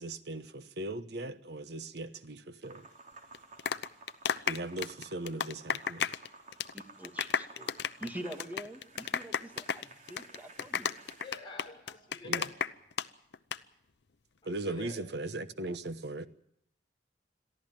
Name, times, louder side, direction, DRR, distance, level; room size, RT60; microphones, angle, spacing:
voice 1, 0.0-2.9 4.5-6.1 12.2-12.5 14.4-16.3, right 2 dB, 70° right, 1.2 m, -38 dB
sound 1, 2.6-11.4, right 3 dB, 45° right, 3.5 m, -54 dB
sound 2, 3.3-6.3 6.5-6.8 7.0-13.1 13.3-13.6, left 7 dB, 70° left, 0.7 m, -33 dB
voice 2, 6.7-7.7 8.0-11.0, right 1 dB, 10° right, 2.4 m, -45 dB
voice 3, 11.0-12.6 14.4-15.1, left 3 dB, 30° left, 5.9 m, -48 dB
22.5 x 14.5 x 9.0 m
head